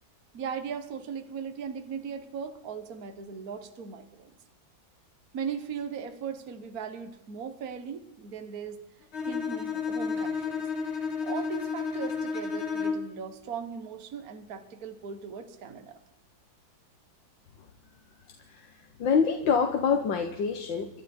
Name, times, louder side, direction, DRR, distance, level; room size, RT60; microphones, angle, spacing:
voice 1, 0.3-4.3 5.3-8.8 9.3-10.7 11.2-16.0, right 6 dB, 55° right, 8 dB, 1.6 m, -38 dB
Bowed string instrument, 9.1-13.2, left 5 dB, 35° left, 1.7 m, -31 dB
voice 2, 18.5-21.0, left 6 dB, 75° left, 4 dB, 1.9 m, -26 dB
27.0 x 12.0 x 4.4 m, 0.96 s
omnidirectional pair, 2.1 m